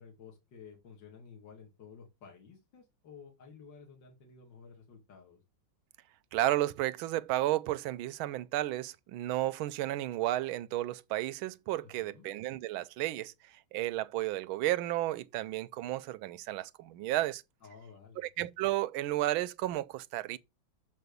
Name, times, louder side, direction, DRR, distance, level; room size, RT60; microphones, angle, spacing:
voice 1, 0.0-5.4 11.8-12.3 17.6-18.3, left 6 dB, 60° left, 2.8 m, -53 dB
voice 2, 6.3-17.4 18.2-20.4, right 15 dB, 80° right, 1.5 m, -33 dB
7.1 x 5.9 x 6.7 m
omnidirectional pair, 2.2 m